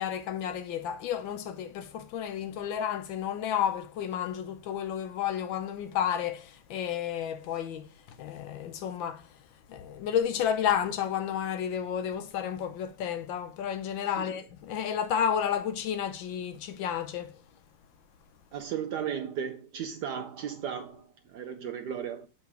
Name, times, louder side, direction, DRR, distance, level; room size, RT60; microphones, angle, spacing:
voice 1, 0.0-7.9 8.2-9.2 9.7-17.4, left 9 dB, 75° left, 1.4 m, -31 dB
voice 2, 14.0-14.4 18.5-22.3, right 8 dB, 70° right, 1.0 m, -36 dB
7.3 x 3.9 x 4.7 m
omnidirectional pair, 2.3 m